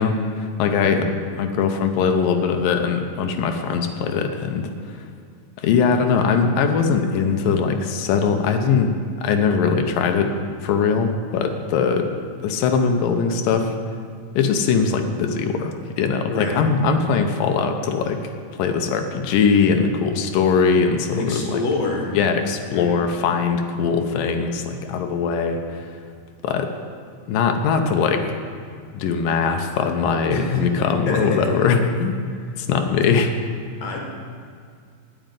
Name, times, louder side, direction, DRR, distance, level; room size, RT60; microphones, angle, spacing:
voice 1, 0.0-5.0 5.6-12.1 12.4-13.8 14.4-18.2 18.5-21.6 22.1-25.9 26.4-26.7 27.3-28.3 28.9-32.2 32.6-33.3, left 5 dB, 85° left, 5 dB, 2.5 m, -21 dB
voice 2, 16.3-16.6 21.1-22.2 22.7-23.0 30.3-30.6 31.1-31.4 33.8-34.0, left 3 dB, 55° left, 0 dB, 2.5 m, -26 dB
9.3 x 9.0 x 9.2 m, 2.2 s
omnidirectional pair, 3.9 m